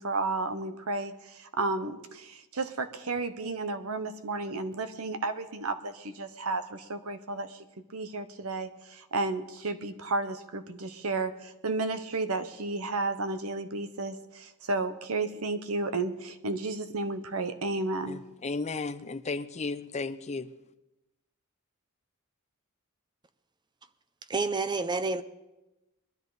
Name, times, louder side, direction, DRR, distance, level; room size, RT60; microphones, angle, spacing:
voice 1, 0.0-7.6 7.9-18.2, right 3 dB, 85° right, 0.9 m, -32 dB
voice 2, 18.1-20.5, left 3 dB, 30° left, 0.6 m, -34 dB
voice 3, 24.3-25.2, right 3 dB, 20° right, 0.6 m, -28 dB
21.5 x 12.5 x 4.0 m
head